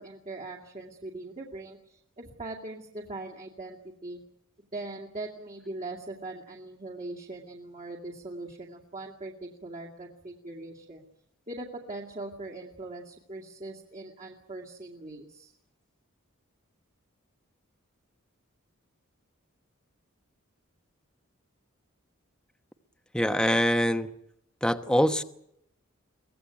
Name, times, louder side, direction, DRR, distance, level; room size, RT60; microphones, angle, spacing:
voice 1, 0.0-3.8 4.0-4.2 4.7-11.1 11.5-15.5, right 2 dB, 35° right, 0 dB, 2.4 m, -41 dB
voice 2, 23.1-24.1 24.6-25.2, equal, 5° left, 9 dB, 1.1 m, -24 dB
23.5 x 18.0 x 9.3 m, 0.75 s
head